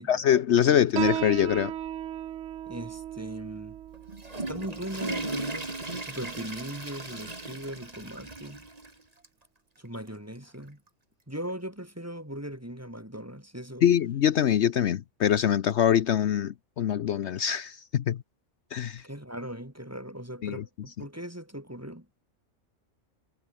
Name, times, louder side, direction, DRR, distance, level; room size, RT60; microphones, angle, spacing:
voice 1, 0.0-1.7 13.8-18.2 18.7-19.0 20.4-20.6, left 9 dB, 65° left, 1.0 m, -24 dB
Piano, 1.0-8.0, right 11 dB, 70° right, 1.0 m, -37 dB
voice 2, 2.7-3.8 4.4-5.7 6.0-8.7 9.8-10.8 11.3-13.9 19.0-22.1, equal, 10° right, 3.7 m, -39 dB
Water / Toilet flush, 3.9-8.9 9.2-9.3 10.1-10.2 11.5-11.6, right 2 dB, 30° right, 2.5 m, -37 dB
omnidirectional pair, 1.3 m